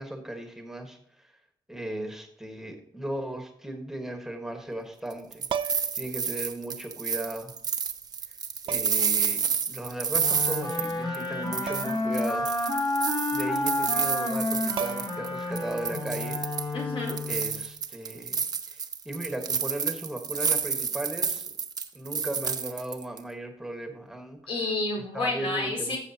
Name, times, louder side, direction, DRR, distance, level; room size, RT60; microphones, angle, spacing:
voice 1, 0.0-1.3 1.7-7.5 8.7-12.9 13.3-16.4 17.3-21.5 21.9-24.4 25.1-26.0, right 1 dB, 5° right, 4 dB, 1.4 m, -37 dB
sound 1, 5.1-11.3 11.5-15.3 15.6-16.7 17.1-23.2, right 6 dB, 45° right, 0.8 m, -30 dB
sound 2, 5.5-6.1 7.4-7.5 8.7-9.1 11.7-12.1 12.4-12.5 14.3-14.4 14.8-15.3 17.3-17.5, right 8 dB, 65° right, 0.4 m, -34 dB
sound 3, 10.2-17.6, left 2 dB, 50° left, 2.9 m, -30 dB
voice 2, 16.7-17.2 24.5-26.0, left 2 dB, 80° left, -1 dB, 4.3 m, -30 dB
12.5 x 7.2 x 2.8 m, 0.67 s
wide cardioid pair, 155°, 9 cm